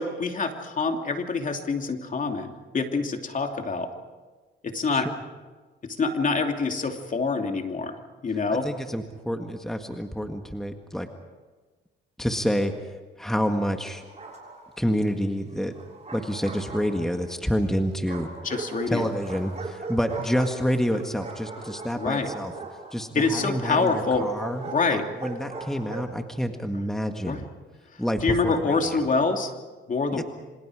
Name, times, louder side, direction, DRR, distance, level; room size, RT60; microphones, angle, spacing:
voice 1, 0.0-3.9 4.6-5.1 5.8-8.0 8.2-8.7 18.4-19.1 22.0-22.3 23.1-24.3 24.6-25.1 27.3-27.4 28.2-29.5 29.9-30.2, left 4 dB, 40° left, 4 dB, 2.8 m, -26 dB
voice 2, 8.6-11.1 12.2-14.0 14.8-15.7 16.1-18.3 18.9-22.5 22.9-27.5 28.0-29.1 30.1-30.2, equal, ahead, 5 dB, 1.8 m, -28 dB
Bark, 13.9-14.8 15.7-17.3 18.1-26.2, right 4 dB, 35° right, 6.6 m, -39 dB
27.5 x 25.5 x 4.9 m, 1.3 s
cardioid pair, 90°, 20 cm